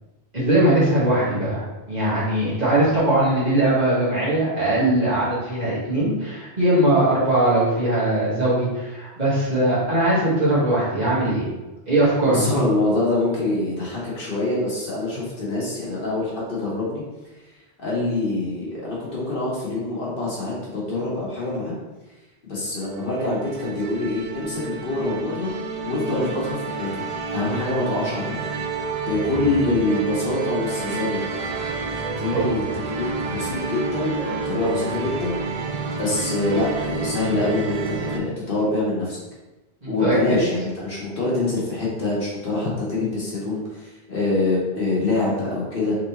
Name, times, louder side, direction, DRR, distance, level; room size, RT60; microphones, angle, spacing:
voice 1, 0.3-11.5 11.9-12.6 32.3-32.5 39.8-40.1, right 1 dB, 40° right, -9 dB, 1.5 m, -20 dB
voice 2, 12.2-17.0 17.8-21.7 22.4-25.5 25.8-27.0 27.3-28.4 29.0-31.3 32.1-32.6 32.9-39.2 39.8-46.0, left 2 dB, 60° left, -6 dB, 1.4 m, -25 dB
sound 1, 22.8-38.2, right 4 dB, 55° right, 0.4 m, -29 dB
3.8 x 3.4 x 2.9 m, 1.1 s
omnidirectional pair, 1.1 m